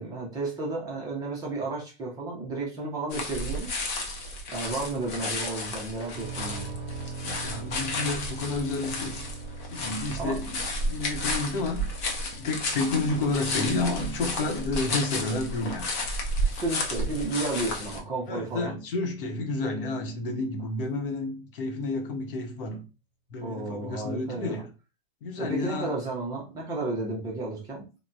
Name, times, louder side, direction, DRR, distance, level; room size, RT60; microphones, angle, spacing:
voice 1, 0.0-3.8 4.5-6.7 10.2-10.4 16.5-18.7 23.4-24.6 25.4-27.8, right 2 dB, 10° right, 0.6 m, -32 dB
sound 1, 3.1-18.0, left 1 dB, 30° left, 0.6 m, -32 dB
sound 2, 6.1-19.8, right 3 dB, 45° right, 0.8 m, -44 dB
voice 2, 7.2-9.3 9.7-15.9 18.3-22.9 23.3-24.7 25.2-25.9, left 2 dB, 55° left, 0.9 m, -30 dB
3.4 x 2.1 x 2.6 m
hypercardioid pair, 145°, 32 cm